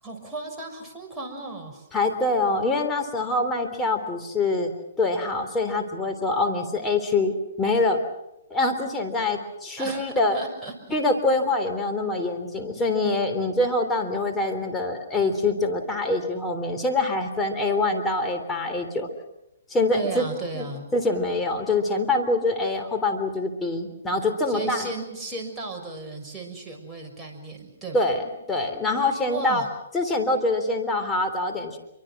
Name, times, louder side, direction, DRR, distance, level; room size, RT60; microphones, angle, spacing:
voice 1, 0.0-1.9 9.8-10.0 10.3-11.0 19.9-20.9 24.5-28.2 29.3-29.7, right 3 dB, 5° right, -2 dB, 6.4 m, -35 dB
voice 2, 1.9-4.7 5.0-8.0 8.5-10.4 10.9-19.1 19.7-20.2 20.6-20.7 20.9-24.9 27.9-28.2 28.5-29.6 29.9-31.8, left 2 dB, 10° left, 3 dB, 3.6 m, -25 dB
28.0 x 24.5 x 6.2 m, 0.86 s
hypercardioid pair, 140°, 0 cm